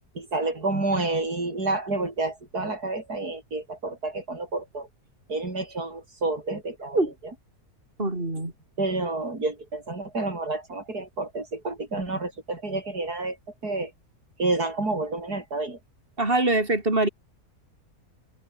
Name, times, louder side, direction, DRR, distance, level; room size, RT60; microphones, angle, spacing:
voice 1, 0.1-4.9 5.3-7.1 8.8-13.4 13.6-13.9 14.4-15.8, right 2 dB, 85° right, 5.9 m, -29 dB
voice 2, 8.0-8.5 16.2-17.1, right 2 dB, 35° right, 5.5 m, -23 dB
omnidirectional pair, 1.6 m